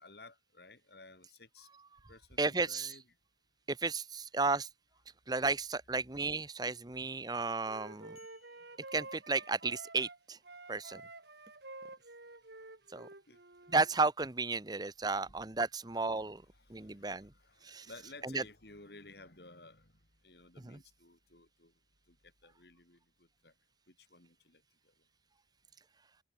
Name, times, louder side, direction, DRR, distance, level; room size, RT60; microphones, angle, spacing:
voice 1, 0.0-1.7 2.1-3.0 13.3-13.4 15.2-15.4 16.5-19.9 20.2-21.7 22.1-22.2 22.4-23.5 23.9-24.6, left 3 dB, 60° left, 4.0 m, -56 dB
voice 2, 2.4-3.0 3.7-4.7 5.3-8.2 8.9-10.4 10.7-11.0 12.9-13.1 13.7-16.4 16.7-17.3 17.6-17.9 18.2-18.4 20.6-20.8, right 3 dB, 20° right, 0.8 m, -33 dB
Wind instrument woodwind instrument, 7.3-10.2 10.4-13.9, right 2 dB, 65° right, 4.0 m, -50 dB
sound 1, 8.2-10.0, left 8 dB, 35° left, 4.5 m, -68 dB
head